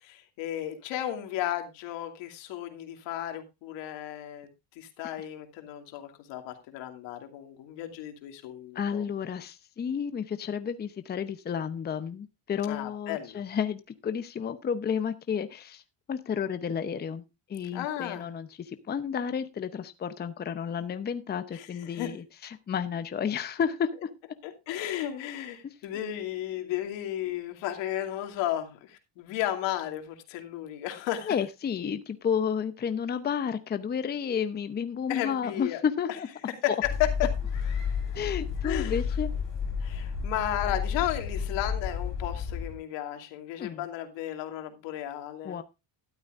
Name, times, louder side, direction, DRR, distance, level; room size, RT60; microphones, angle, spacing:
voice 1, 0.0-4.5 4.8-9.1 12.6-13.4 17.7-18.3 21.5-22.1 24.4-31.4 35.1-35.8 36.6-37.3 38.6-39.0 39.8-45.6, left 12 dB, 85° left, 5 dB, 2.7 m, -34 dB
voice 2, 8.7-15.8 16.1-17.2 17.5-24.1 25.6-25.7 31.2-36.3 38.1-39.3 43.6-43.8 45.4-45.6, left 7 dB, 25° left, 10 dB, 0.8 m, -31 dB
sound 1, 36.8-42.8, left 6 dB, 45° left, 6.6 m, -31 dB
13.0 x 12.5 x 2.5 m, 0.25 s
cardioid pair, 145°, 43 cm